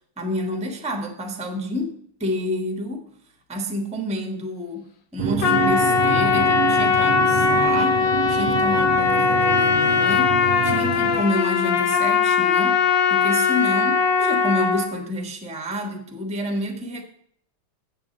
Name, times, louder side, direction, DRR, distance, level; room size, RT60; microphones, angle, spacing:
voice 1, 0.2-3.1 3.5-8.0 8.3-10.4 10.6-12.8 13.1-17.0, left 1 dB, 5° right, 4 dB, 0.7 m, -29 dB
sound 1, 5.2-11.2, right 11 dB, 80° right, 1.4 m, -28 dB
Trumpet, 5.4-14.9, left 6 dB, 65° left, 1.5 m, -20 dB
8.0 x 6.3 x 7.4 m, 0.67 s
omnidirectional pair, 2.4 m